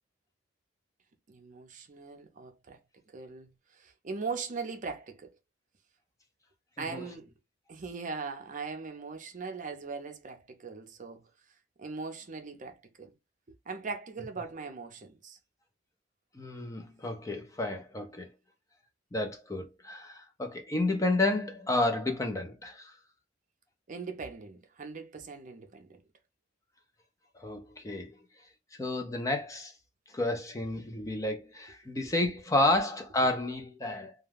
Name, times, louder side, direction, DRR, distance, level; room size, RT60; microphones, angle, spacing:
voice 1, 1.3-2.8 3.1-5.3 6.8-7.3 7.7-11.3 11.8-13.1 13.7-15.4 23.9-25.9, right 4 dB, 45° right, 0.5 m, -40 dB
voice 2, 16.3-18.3 19.1-22.9 27.4-28.1 28.8-29.7 30.1-34.1, left 2 dB, 15° left, 0.5 m, -31 dB
2.3 x 2.2 x 3.3 m
head